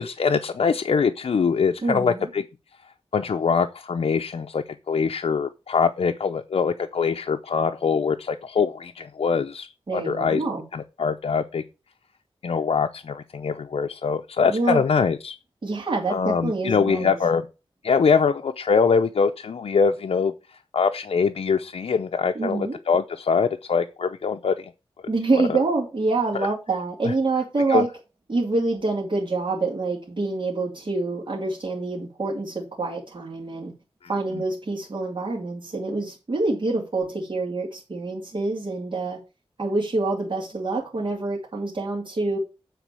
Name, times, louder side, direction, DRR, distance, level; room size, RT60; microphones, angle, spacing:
voice 1, 0.0-2.4 3.1-10.4 10.7-11.6 12.4-15.4 16.1-17.5 17.8-20.3 20.7-24.7 25.5-25.6 26.3-26.5 27.0-27.1 27.7-27.8, left 5 dB, 75° left, 0.6 m, -23 dB
voice 2, 1.8-2.2 9.9-10.6 14.5-14.8 15.6-17.1 22.3-22.8 25.1-27.9 28.3-33.7 34.1-39.2 39.6-42.4, right 3 dB, 55° right, 2.7 m, -26 dB
9.3 x 4.2 x 6.9 m
wide cardioid pair, 80°, 10 cm